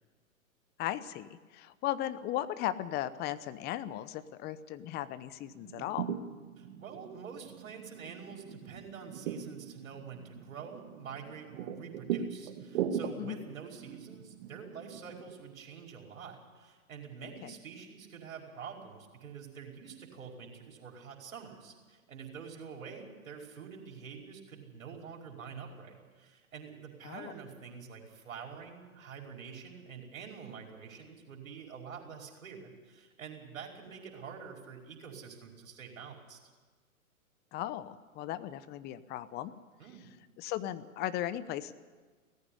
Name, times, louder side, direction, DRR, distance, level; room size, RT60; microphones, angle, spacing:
voice 1, 0.8-6.1 13.2-13.4 17.4-17.5 27.0-27.3 37.5-39.5 40.4-41.7, left 13 dB, 25° left, 15 dB, 0.8 m, -37 dB
sound 1, 5.5-15.3, right 8 dB, 45° right, 1.4 m, -40 dB
voice 2, 6.6-36.4 39.8-40.1, right 6 dB, 70° right, 1 dB, 5.3 m, -47 dB
18.0 x 15.0 x 10.0 m, 1.4 s
hypercardioid pair, 115°, 42 cm